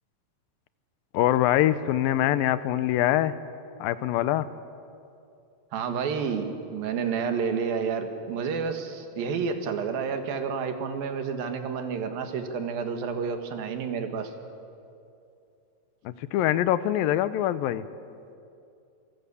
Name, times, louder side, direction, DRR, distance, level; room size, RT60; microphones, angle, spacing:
voice 1, 1.1-3.3 3.8-4.5 16.1-17.8, left 13 dB, 85° left, 15 dB, 2.6 m, -24 dB
voice 2, 5.7-14.3, right 6 dB, 90° right, 6 dB, 3.5 m, -30 dB
27.5 x 24.5 x 7.0 m, 2.6 s
omnidirectional pair, 4.0 m